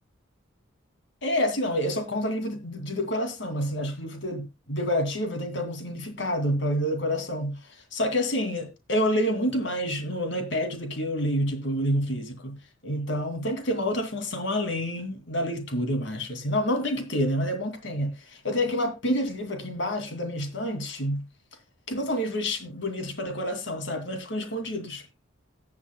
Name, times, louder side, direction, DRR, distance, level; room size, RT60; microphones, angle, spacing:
voice 1, 1.2-7.6 7.9-12.6 12.8-21.2 21.9-25.0, equal, 65° left, 2.4 m, -28 dB
18.5 x 7.4 x 2.2 m
head